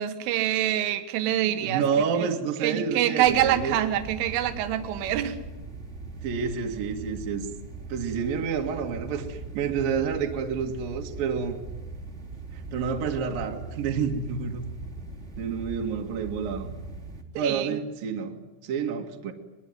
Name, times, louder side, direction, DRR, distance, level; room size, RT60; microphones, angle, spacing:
voice 1, 0.0-1.8 2.6-5.4 17.4-17.8, right 12 dB, 75° right, 8 dB, 4.0 m, -25 dB
voice 2, 1.4-3.8 6.2-7.5 7.9-11.6 12.5-14.7 15.4-16.7 17.4-19.3, right 6 dB, 55° right, 2 dB, 3.1 m, -29 dB
sound 1, 3.3-17.2, right 3 dB, 15° right, 2.5 m, -40 dB
24.0 x 21.5 x 9.5 m, 1.1 s
omnidirectional pair, 5.9 m